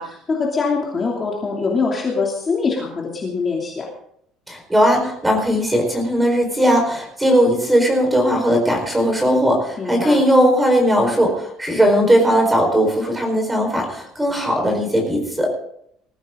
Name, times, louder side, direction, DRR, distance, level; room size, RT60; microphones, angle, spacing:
voice 1, 0.0-3.9 9.8-10.2, left 4 dB, 20° left, -2 dB, 2.8 m, -23 dB
voice 2, 4.5-15.5, equal, 5° right, 3 dB, 4.6 m, -18 dB
20.5 x 15.0 x 3.8 m, 0.68 s
cardioid pair, 180°, 0 cm